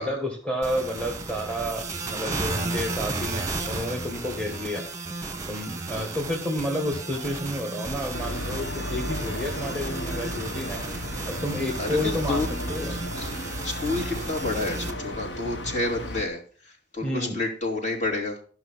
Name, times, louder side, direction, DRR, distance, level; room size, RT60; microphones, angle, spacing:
voice 1, 0.0-4.9 5.5-10.8 11.3-12.4 12.7-13.0 17.0-17.4, left 1 dB, 5° left, 0 dB, 1.9 m, -30 dB
sound 1, 0.6-14.9, right 3 dB, 20° right, 1.4 m, -34 dB
sound 2, 8.1-16.3, left 1 dB, 75° left, 1.3 m, -34 dB
voice 2, 11.8-12.5 12.8-18.4, left 2 dB, 40° left, -1 dB, 3.2 m, -30 dB
14.0 x 6.0 x 5.8 m, 0.41 s
head